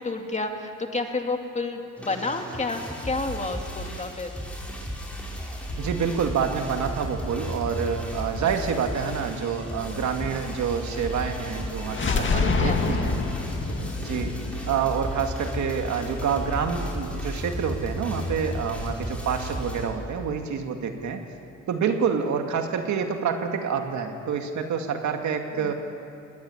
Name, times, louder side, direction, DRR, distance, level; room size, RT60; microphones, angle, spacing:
voice 1, 0.0-4.3 10.2-10.4 12.0-13.3 13.7-14.0 25.6-25.7, left 3 dB, 25° left, 4 dB, 2.4 m, -31 dB
sound 1, 2.0-19.9, equal, 5° left, 5.4 m, -34 dB
voice 2, 5.8-13.2 14.0-14.3 14.7-21.2 21.7-25.7, right 6 dB, 70° right, 5 dB, 2.2 m, -27 dB
sound 2, 11.9-15.7, left 4 dB, 40° left, 2.1 m, -27 dB
19.0 x 19.0 x 9.8 m, 2.5 s
cardioid pair, 90°, 30 cm